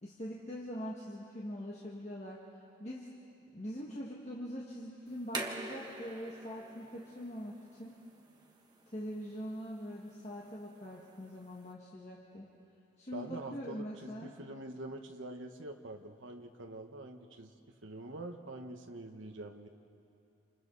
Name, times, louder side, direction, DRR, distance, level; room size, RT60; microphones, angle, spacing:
voice 1, 0.0-2.4 2.8-3.1 3.5-8.0 8.9-12.5 13.0-14.3, equal, 35° left, -4 dB, 1.8 m, -43 dB
sound 1, 5.1-11.7, right 2 dB, 20° right, 1.3 m, -47 dB
voice 2, 13.1-17.5 17.8-19.7, right 1 dB, 85° right, 4 dB, 1.2 m, -45 dB
28.0 x 28.0 x 4.1 m, 2.7 s
head